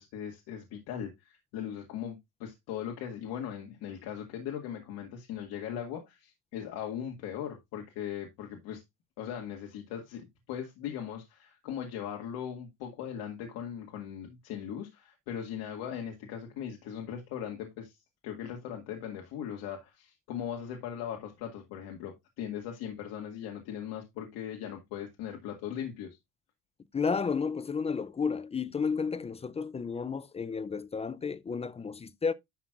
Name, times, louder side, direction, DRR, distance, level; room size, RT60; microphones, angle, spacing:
voice 1, 0.0-8.8 9.2-18.0 18.2-26.2, left 9 dB, 85° left, 1.9 m, -39 dB
voice 2, 26.9-32.3, left 5 dB, 20° left, 0.4 m, -32 dB
11.5 x 6.1 x 2.4 m
cardioid pair, 145°, 36 cm